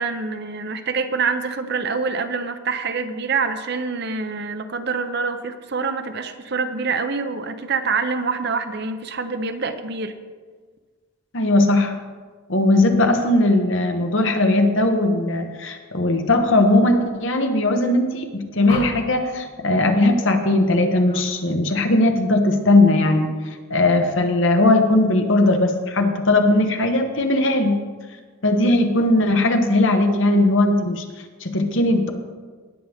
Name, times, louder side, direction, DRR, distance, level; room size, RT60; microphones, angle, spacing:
voice 1, 0.0-10.1, right 4 dB, 50° right, 8 dB, 0.7 m, -26 dB
voice 2, 11.3-11.9 12.5-23.3 23.7-27.8 28.4-31.0 31.4-32.1, left 2 dB, 60° left, 5 dB, 1.2 m, -18 dB
sound 1, 18.7-19.3 21.0-21.3 21.7-22.1, left 1 dB, 45° left, 2.2 m, -34 dB
19.0 x 7.7 x 3.5 m, 1.5 s
head